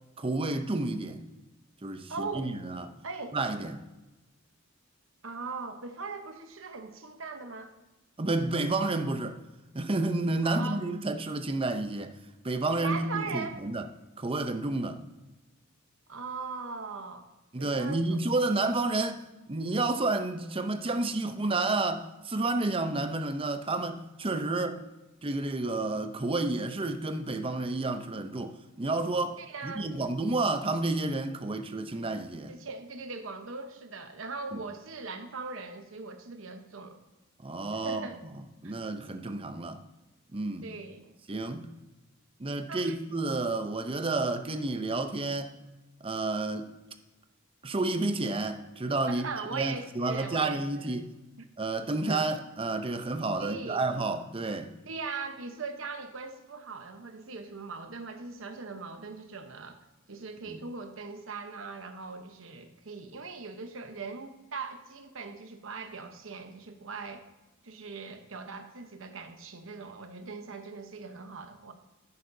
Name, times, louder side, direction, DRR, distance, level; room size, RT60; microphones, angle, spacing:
voice 1, 0.2-1.2 1.8-2.9 3.3-3.8 8.2-9.4 9.7-12.2 12.4-13.8 14.2-15.0 17.5-19.2 19.5-24.8 25.2-32.5 37.4-38.1 38.6-39.8 40.3-40.7 41.3-41.7 42.4-45.5 46.0-46.7 47.6-49.2 49.5-51.1 51.6-54.7 60.5-60.6, right 2 dB, 25° right, 0.6 m, -30 dB
voice 2, 2.1-2.5 3.0-3.4 5.2-7.7 10.4-10.9 12.8-13.6 16.1-17.3 17.6-18.2 29.4-29.9 32.5-37.0 37.8-38.2 38.6-38.8 40.6-41.1 42.7-43.0 49.1-50.9 51.4-51.5 52.1-52.2 53.4-53.9 54.8-59.8 60.1-67.2 67.6-71.7, right 4 dB, 70° right, 1.0 m, -40 dB
11.0 x 8.4 x 2.7 m
head